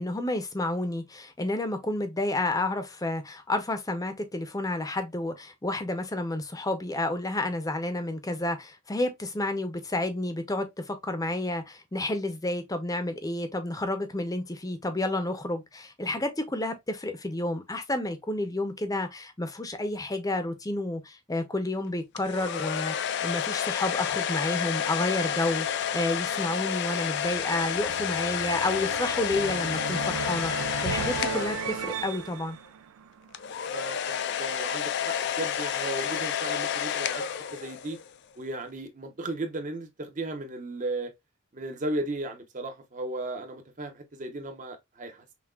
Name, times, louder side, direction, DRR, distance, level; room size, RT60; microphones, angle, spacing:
voice 1, 0.0-32.6, left 2 dB, 15° left, 0.6 m, -30 dB
sound 1, 22.2-32.3 33.3-38.1, left 9 dB, 55° left, 0.4 m, -30 dB
sound 2, 24.7-33.7, right 8 dB, 90° right, 0.3 m, -38 dB
voice 2, 33.7-37.3 37.5-38.0 38.4-41.1 41.5-45.3, right 2 dB, 40° right, 0.8 m, -35 dB
5.8 x 2.3 x 2.3 m
head